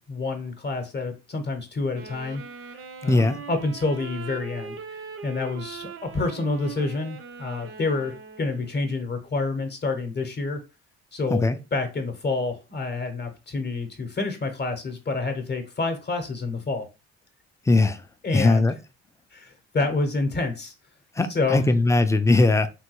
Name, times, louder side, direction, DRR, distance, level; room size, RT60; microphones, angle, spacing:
voice 1, 0.0-2.4 3.0-4.8 5.2-8.1 8.4-10.6 11.1-11.4 11.7-16.9 18.2-18.7 19.3-20.7 21.3-21.6, left 3 dB, 35° left, 0.8 m, -28 dB
Wind instrument woodwind instrument, 1.9-8.8, right 5 dB, 45° right, 0.5 m, -40 dB
voice 2, 3.1-3.4 11.3-11.6 17.7-18.0 18.3-18.7 21.2-22.7, left 2 dB, 10° left, 0.3 m, -19 dB
3.3 x 2.2 x 3.0 m
cardioid pair, 90°, 30 cm